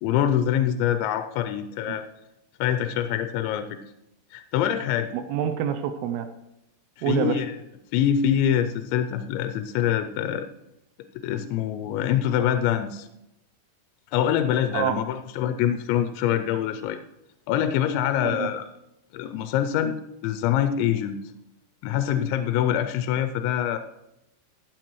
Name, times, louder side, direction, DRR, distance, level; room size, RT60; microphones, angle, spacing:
voice 1, 0.0-2.0 2.6-3.8 4.3-5.1 7.0-7.5 7.9-10.5 11.2-13.1 14.1-17.0 17.5-18.7 19.1-19.9 20.2-21.2 21.8-23.8, left 10 dB, 85° left, 8 dB, 2.9 m, -24 dB
voice 2, 5.1-6.3 7.0-7.4 14.7-15.0 18.2-18.5, right 9 dB, 85° right, 9 dB, 2.3 m, -26 dB
15.0 x 9.2 x 3.1 m, 0.85 s
omnidirectional pair, 5.2 m